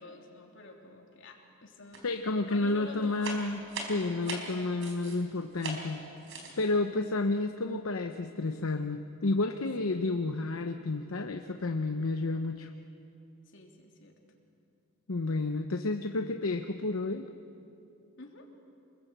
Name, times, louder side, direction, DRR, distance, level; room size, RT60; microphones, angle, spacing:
voice 1, 0.0-2.0 2.3-3.6 3.9-4.9 9.8-10.2 13.5-14.2 18.2-18.5, left 2 dB, 65° left, 1 dB, 3.2 m, -49 dB
sound 1, 1.9-2.3 2.5-5.2 5.6-5.9 6.2-6.7, right 3 dB, 65° right, 4.1 m, -40 dB
voice 2, 2.0-6.0 6.6-12.7 15.1-17.3, left 2 dB, 80° left, 6 dB, 0.9 m, -31 dB
27.5 x 21.0 x 8.1 m, 2.7 s
head